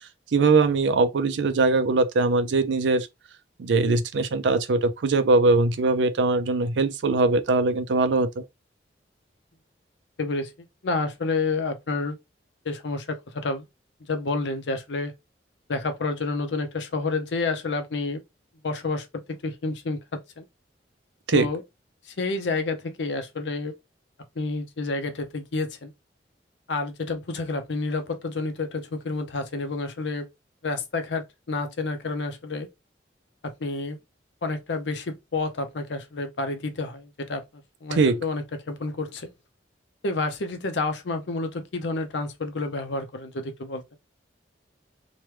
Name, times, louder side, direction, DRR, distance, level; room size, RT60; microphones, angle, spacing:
voice 1, 0.3-3.1 3.6-8.4 21.3-21.5 37.9-38.2, right 3 dB, 85° right, 0.4 m, -21 dB
voice 2, 10.2-10.5 10.8-12.2 12.6-13.6 14.1-15.1 15.7-18.2 18.6-20.4 21.3-21.6 22.1-23.7 24.4-25.9 26.7-30.3 30.6-32.7 33.4-34.0 34.4-37.4 37.8-39.3 40.0-44.0, left 3 dB, 80° left, 0.7 m, -29 dB
3.0 x 2.2 x 3.2 m
head